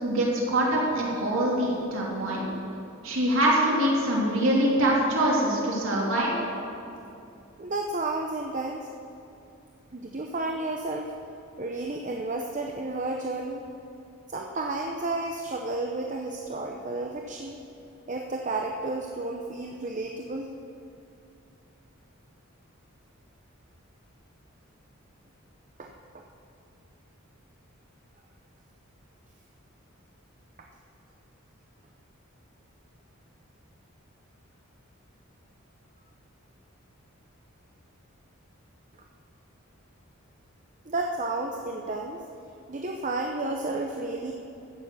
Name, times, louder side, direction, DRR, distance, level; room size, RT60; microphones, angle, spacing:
voice 1, 0.0-2.4 3.0-6.3, right 1 dB, 70° right, -4 dB, 3.0 m, -24 dB
voice 2, 7.6-8.9 9.9-11.1 11.6-13.6 14.3-17.6 18.1-20.5 25.8-25.9 26.1-26.2 40.9-42.2 42.7-44.3, right 2 dB, 35° right, 1 dB, 0.7 m, -32 dB
15.0 x 7.1 x 7.1 m, 2.8 s
head